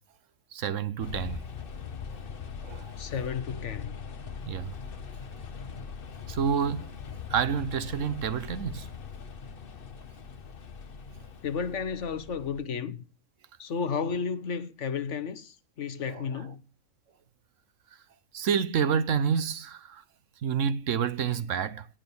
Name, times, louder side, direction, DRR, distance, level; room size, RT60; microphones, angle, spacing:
voice 1, 0.5-1.4 2.6-2.9 4.4-4.7 6.3-6.9 7.3-8.9 16.1-16.5 18.3-20.0 20.4-21.9, right 7 dB, 70° right, 1.2 m, -29 dB
sound 1, 1.0-12.6, left 6 dB, 45° left, 1.1 m, -41 dB
voice 2, 3.0-4.0 11.4-13.0 13.6-16.6, left 6 dB, 65° left, 1.2 m, -32 dB
17.5 x 6.3 x 7.0 m
omnidirectional pair, 1.4 m